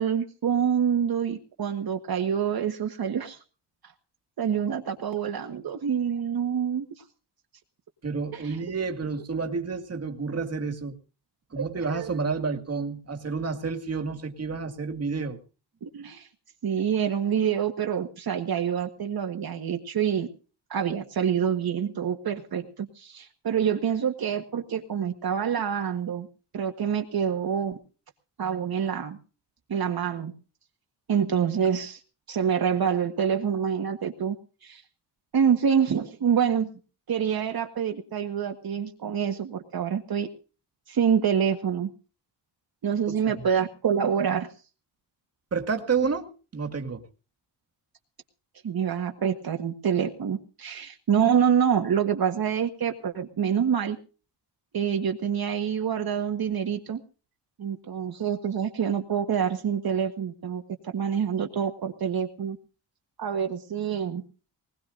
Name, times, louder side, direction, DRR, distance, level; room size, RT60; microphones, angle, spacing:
voice 1, 0.0-3.4 3.8-3.9 4.4-6.8 8.3-8.6 11.6-12.1 15.8-16.3 16.6-20.3 20.7-26.3 26.5-27.8 28.4-29.2 29.7-30.3 31.1-32.0 32.3-34.4 34.6-34.8 35.3-36.7 37.1-40.3 40.9-41.9 42.8-44.5 48.6-54.0 54.7-57.0 57.6-62.6 63.2-64.2, right 8 dB, 55° right, 5 dB, 1.6 m, -26 dB
voice 2, 8.0-11.0 11.5-15.4 43.4-43.5 45.5-47.0, right 5 dB, 35° right, 6 dB, 2.1 m, -30 dB
20.5 x 20.5 x 2.6 m, 0.37 s
wide cardioid pair, 150°, 43 cm